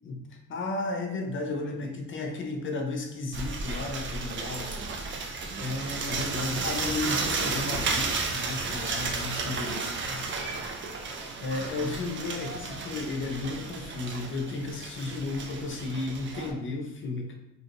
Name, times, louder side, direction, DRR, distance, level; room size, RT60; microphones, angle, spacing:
voice 1, 0.0-4.7 5.6-9.8 10.1-10.3 11.4-17.4, left 3 dB, 40° left, 2 dB, 0.6 m, -33 dB
voice 2, 1.4-1.9 4.4-5.1 5.4-6.4 9.3-12.0 16.3-16.6, right 2 dB, 75° right, -2 dB, 1.2 m, -48 dB
sound 1, 3.3-16.5, right 4 dB, 40° right, 0.5 m, -33 dB
5.2 x 2.4 x 3.0 m, 0.95 s
cardioid pair, 170°, 30 cm